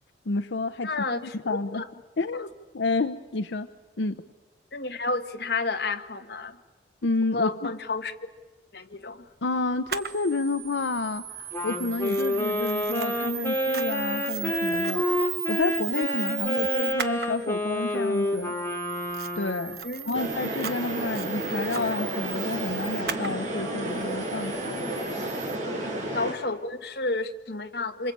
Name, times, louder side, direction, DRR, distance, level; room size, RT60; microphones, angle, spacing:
voice 1, 0.3-0.9 1.2-1.8 2.2-3.7 4.0-4.2 7.0-7.7 9.4-18.5 19.4-24.9 25.7-25.9, left 3 dB, 90° left, 10 dB, 0.8 m, -30 dB
voice 2, 0.8-1.9 2.3-2.4 4.7-6.6 7.3-8.3 8.7-9.3 19.8-20.3 26.1-28.1, left 3 dB, 65° left, 6 dB, 1.5 m, -31 dB
Camera, 9.9-25.6, right 10 dB, 60° right, 1.2 m, -36 dB
Wind instrument woodwind instrument, 11.5-19.8, left 1 dB, 15° left, 2.7 m, -28 dB
sound 1, 20.1-26.3, right 1 dB, 45° right, 5.6 m, -32 dB
26.5 x 26.0 x 8.6 m, 1.3 s
head